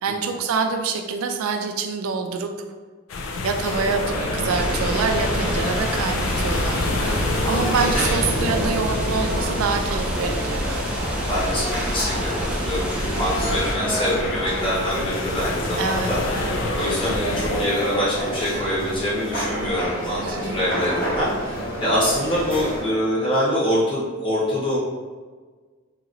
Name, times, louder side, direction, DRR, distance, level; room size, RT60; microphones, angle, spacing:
voice 1, 0.0-2.5 3.4-6.8 7.4-10.6 15.8-16.2 20.2-20.6, right 4 dB, 85° right, 5 dB, 0.4 m, -26 dB
sound 1, 3.1-17.7, left 2 dB, 70° left, 0.3 m, -29 dB
sound 2, 3.5-22.8, right 1 dB, 40° left, 1.1 m, -29 dB
sound 3, 4.5-13.7, equal, 5° right, 0.4 m, -28 dB
voice 2, 11.1-24.8, equal, 25° left, -8 dB, 1.0 m, -25 dB
2.9 x 2.9 x 2.6 m, 1.4 s
head